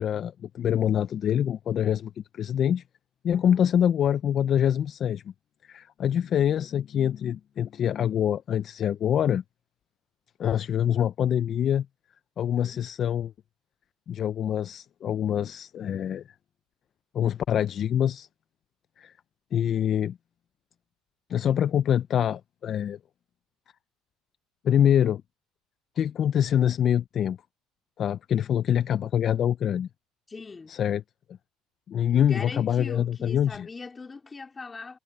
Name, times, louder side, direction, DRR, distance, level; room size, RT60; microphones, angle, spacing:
voice 1, 0.0-2.8 3.2-5.3 5.6-9.4 10.4-11.9 12.4-13.3 14.1-16.2 17.1-18.3 19.0-19.1 19.5-20.2 21.3-23.0 24.6-25.2 26.0-27.4 28.0-29.9 30.7-31.0 31.9-33.7, left 9 dB, 40° left, 0.5 m, -25 dB
voice 2, 3.3-3.7 12.4-12.8 30.3-30.8 32.1-35.0, left 4 dB, 20° left, 3.4 m, -40 dB
cardioid pair, 125°, 0 cm